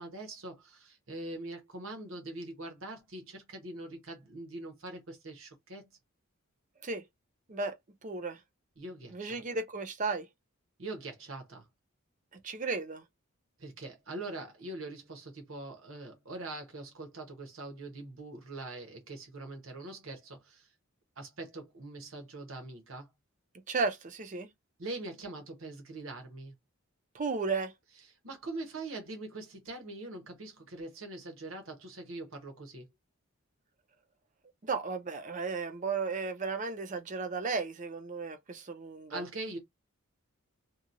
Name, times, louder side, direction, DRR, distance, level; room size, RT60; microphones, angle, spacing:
voice 1, 0.0-5.9 8.8-9.4 10.8-11.7 13.6-20.7 21.2-23.1 24.8-26.5 28.2-32.9 39.1-39.6, right 2 dB, 65° right, 1.0 m, -43 dB
voice 2, 8.0-8.4 9.1-10.3 12.4-13.0 23.7-24.5 27.1-27.7 34.6-39.2, right 4 dB, 35° right, 0.5 m, -34 dB
2.9 x 2.3 x 2.5 m
head